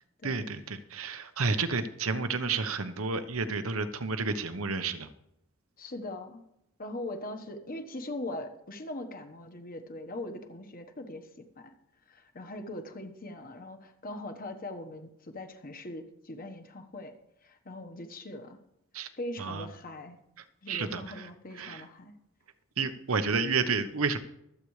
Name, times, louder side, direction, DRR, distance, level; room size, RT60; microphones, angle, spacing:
voice 1, 0.2-5.1 18.9-19.1 19.4-19.6 20.7-21.0 21.6-21.8 22.8-24.2, right 4 dB, 80° right, 9 dB, 1.0 m, -30 dB
voice 2, 5.8-6.4 6.8-11.7 12.1-17.1 17.4-18.6 19.2-20.2 20.6-22.1, left 1 dB, 45° left, 6 dB, 1.3 m, -41 dB
24.0 x 8.3 x 3.3 m, 0.80 s
head